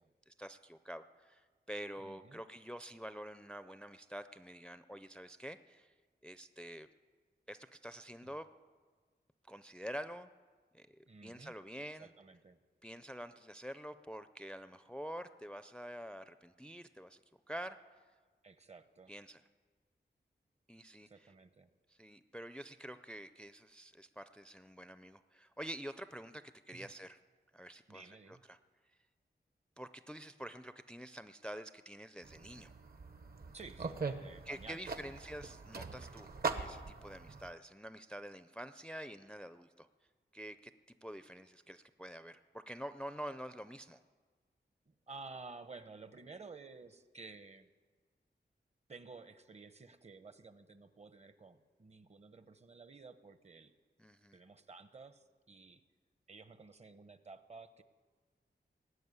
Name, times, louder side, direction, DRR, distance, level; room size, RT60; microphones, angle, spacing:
voice 1, 0.3-5.9 6.2-6.9 7.5-8.5 9.5-10.3 10.7-12.1 12.8-17.2 17.5-17.8 19.1-19.4 20.7-21.3 21.9-27.2 27.5-28.6 29.8-32.7 34.5-39.9 40.3-40.7 41.0-44.0 54.0-54.4, equal, 5° left, 11 dB, 0.4 m, -47 dB
voice 2, 2.0-2.4 8.2-8.4 11.1-12.6 18.4-19.1 21.0-21.7 26.7-26.9 27.9-28.4 33.5-35.2 37.3-37.4 44.9-47.7 48.9-53.7 54.3-55.8 56.3-57.8, right 4 dB, 35° right, 12 dB, 0.8 m, -53 dB
sound 1, 32.2-37.5, right 4 dB, 55° right, 1.0 m, -42 dB
19.0 x 7.3 x 9.6 m, 1.5 s
wide cardioid pair, 115°, 18 cm